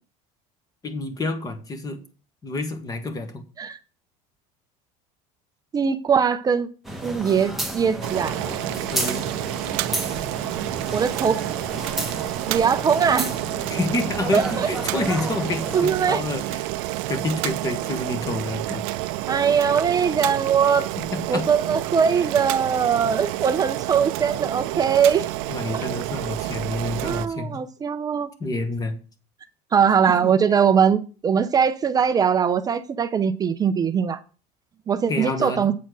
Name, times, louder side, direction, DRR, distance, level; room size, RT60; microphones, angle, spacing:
voice 1, 0.8-2.0 2.4-3.4 8.9-9.3 13.7-16.7 17.1-18.8 21.0-21.5 25.5-27.6 28.4-29.0 35.1-35.7, left 2 dB, 20° left, 1.3 m, -28 dB
voice 2, 5.7-6.7 7.0-8.4 10.9-11.4 12.5-13.3 14.3-14.7 15.7-16.2 19.3-20.9 21.3-25.2 25.7-25.9 27.0-28.3 29.7-34.2 34.9-35.7, right 7 dB, 25° right, 0.5 m, -21 dB
sound 1, 6.8-15.8, right 1 dB, ahead, 1.1 m, -32 dB
Boiling, 8.0-27.3, right 17 dB, 85° right, 0.5 m, -29 dB
8.2 x 4.4 x 6.1 m
cardioid pair, 145°, 17 cm